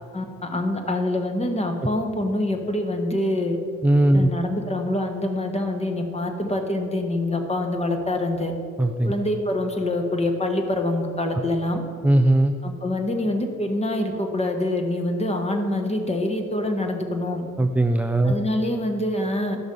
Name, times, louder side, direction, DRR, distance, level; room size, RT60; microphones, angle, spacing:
voice 1, 0.1-3.6 4.1-8.5 9.0-11.8 12.6-17.4 18.2-19.6, left 1 dB, 20° left, 4 dB, 1.3 m, -25 dB
voice 2, 3.8-4.3 8.8-9.1 12.0-12.5 17.6-18.4, right 1 dB, 5° right, 7 dB, 0.4 m, -19 dB
12.0 x 6.1 x 5.4 m, 2.3 s
cardioid pair, 90°, 30 cm